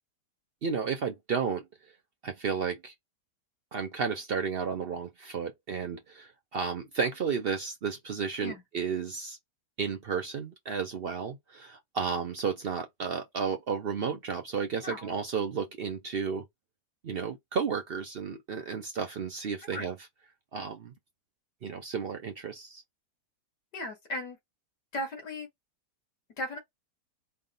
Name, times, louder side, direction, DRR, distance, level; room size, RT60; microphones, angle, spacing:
voice 1, 0.6-1.7 2.2-2.9 3.7-9.4 9.8-16.4 17.0-20.1 20.5-20.9 21.6-22.8, right 6 dB, 70° right, 0.5 m, -33 dB
voice 2, 23.7-24.4 24.9-25.5 26.4-26.6, left 1 dB, 75° left, 2.6 m, -36 dB
4.7 x 2.1 x 3.8 m
omnidirectional pair, 1.8 m